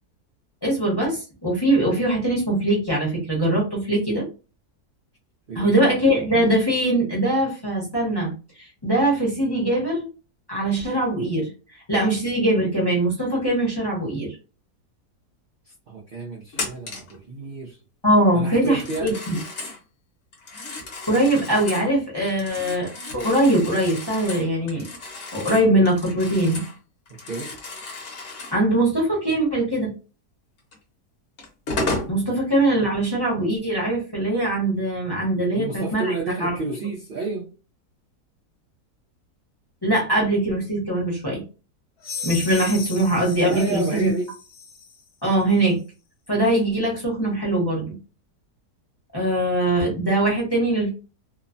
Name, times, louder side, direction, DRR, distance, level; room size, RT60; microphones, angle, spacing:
voice 1, 0.6-4.3 5.5-8.3 8.6-10.1 10.5-14.3 18.0-19.4 21.1-24.8 25.3-26.6 28.5-29.9 32.1-36.6 39.8-41.4 42.2-44.1 45.2-45.8 46.3-48.0 49.1-50.9, right 1 dB, 20° left, 0.7 m, -22 dB
voice 2, 5.5-5.9 15.9-17.8 18.3-19.2 27.3-27.5 32.3-32.4 35.5-37.5 43.5-44.3, right 3 dB, 80° right, 0.4 m, -30 dB
Telephone, 16.5-17.2 18.7-19.8 20.3-21.9 22.3-26.8 27.1-28.6 30.7-30.8 31.4-32.1, left 2 dB, 50° left, 1.0 m, -33 dB
sound 1, 42.0-45.0, left 5 dB, 75° left, 1.2 m, -36 dB
3.0 x 2.1 x 2.5 m
omnidirectional pair, 1.7 m